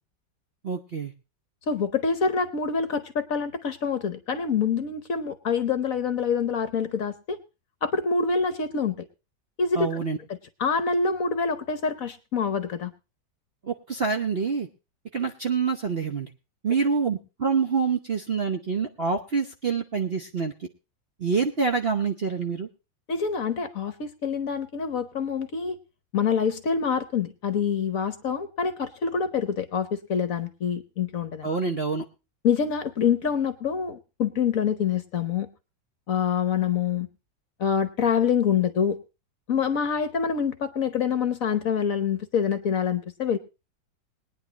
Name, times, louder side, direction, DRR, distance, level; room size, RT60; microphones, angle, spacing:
voice 1, 0.6-1.1 9.7-10.2 13.6-14.7 15.1-16.3 16.6-20.7 21.2-22.7 31.4-32.0, right 5 dB, 45° right, 5 dB, 0.8 m, -26 dB
voice 2, 1.7-7.4 7.8-8.9 9.6-10.0 10.6-12.9 23.1-25.8 26.1-31.5 32.4-35.5 36.1-37.1 37.6-39.0 39.5-43.4, left 6 dB, 55° left, 10 dB, 1.1 m, -26 dB
21.5 x 9.8 x 2.9 m, 0.29 s
omnidirectional pair, 2.0 m